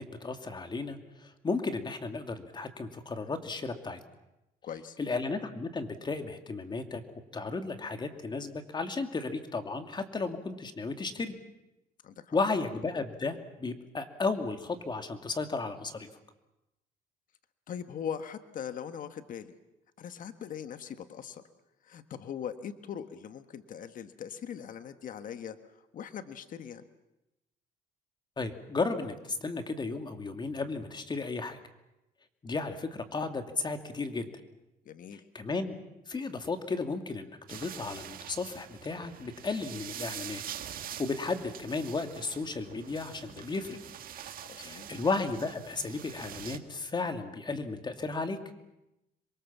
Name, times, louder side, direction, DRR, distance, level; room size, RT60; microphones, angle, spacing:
voice 1, 0.0-4.0 5.0-7.0 7.3-11.3 12.3-16.1 28.4-31.6 32.4-34.3 35.3-35.7 36.1-40.4 40.8-43.8 44.6-48.4, left 3 dB, 25° left, 7 dB, 2.6 m, -34 dB
voice 2, 4.6-5.0 12.0-12.4 17.7-19.5 20.0-21.4 21.8-26.8 34.8-35.2 44.4-44.9, left 8 dB, 50° left, 10 dB, 1.5 m, -41 dB
sound 1, 37.5-46.6, right 10 dB, 60° right, 1.7 m, -45 dB
27.0 x 23.0 x 7.4 m, 0.93 s
cardioid pair, 110°, 17 cm